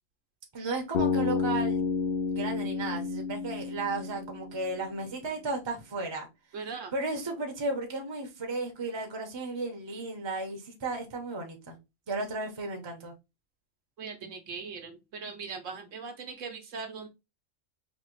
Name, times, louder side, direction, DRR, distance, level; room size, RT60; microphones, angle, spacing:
voice 1, 0.5-1.8 2.3-6.3 6.9-11.8 12.1-13.1, right 2 dB, 25° right, 0.8 m, -34 dB
Bass guitar, 0.9-5.0, left 5 dB, 55° left, 0.9 m, -30 dB
voice 2, 6.5-6.9 14.0-17.1, right 5 dB, 65° right, 1.1 m, -40 dB
4.0 x 2.9 x 3.1 m
omnidirectional pair, 1.4 m